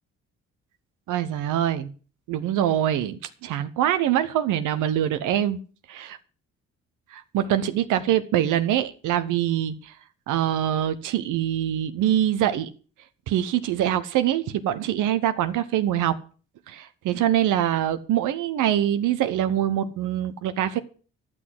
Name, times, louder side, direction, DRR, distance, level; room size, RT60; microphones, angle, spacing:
voice 1, 1.1-1.9 2.3-5.6 5.9-6.2 7.1-9.9 10.3-12.7 13.3-16.2 16.7-20.8, right 11 dB, 90° right, 1.0 m, -24 dB
12.0 x 6.3 x 7.8 m
cardioid pair, 90°, 30 cm